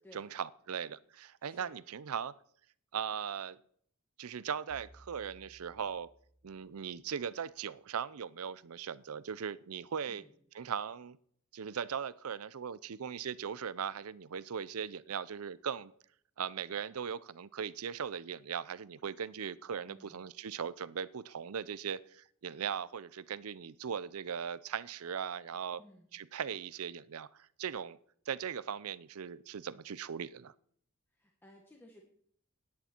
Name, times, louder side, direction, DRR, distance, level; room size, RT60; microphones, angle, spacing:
voice 1, 0.1-2.3 2.9-3.6 4.2-6.1 6.4-10.2 10.5-11.2 11.5-15.9 16.4-25.8 26.1-28.0 28.3-30.5, right 7 dB, 75° right, 18 dB, 0.5 m, -39 dB
voice 2, 1.4-1.7 10.1-10.4 19.9-20.2 25.8-26.1 31.1-32.0, left 1 dB, 10° left, 0 dB, 1.5 m, -58 dB
sound 1, 4.7-7.2, right 1 dB, 80° left, 2.6 m, -61 dB
17.0 x 9.7 x 4.4 m, 0.65 s
head